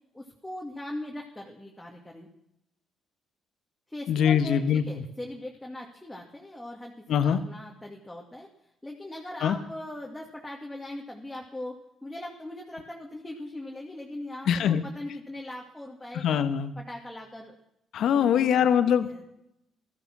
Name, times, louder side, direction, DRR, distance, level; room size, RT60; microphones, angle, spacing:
voice 1, 0.1-2.3 3.9-8.5 8.8-16.4 16.8-17.6 18.1-19.2, left 1 dB, 10° left, -1 dB, 2.2 m, -40 dB
voice 2, 4.1-4.8 7.1-7.4 9.4-9.6 14.5-14.8 16.1-16.8 17.9-19.1, left 8 dB, 70° left, 11 dB, 1.2 m, -23 dB
15.5 x 13.0 x 6.1 m, 0.81 s
cardioid pair, 85°, 0 cm